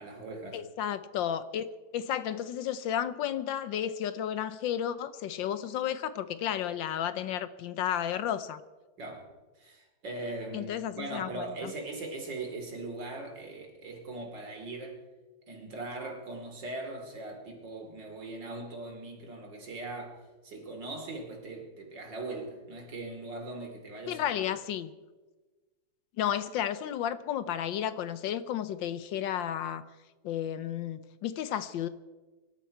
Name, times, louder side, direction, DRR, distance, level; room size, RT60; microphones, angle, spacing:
voice 1, 0.0-0.6 9.0-9.3 9.6-15.0 15.5-24.5, right 2 dB, 65° right, 3.3 m, -40 dB
voice 2, 0.5-1.7 1.9-8.6 10.5-11.7 24.1-24.9 26.2-29.8 30.2-31.9, left 10 dB, 75° left, 1.4 m, -32 dB
24.5 x 11.5 x 4.6 m
omnidirectional pair, 2.1 m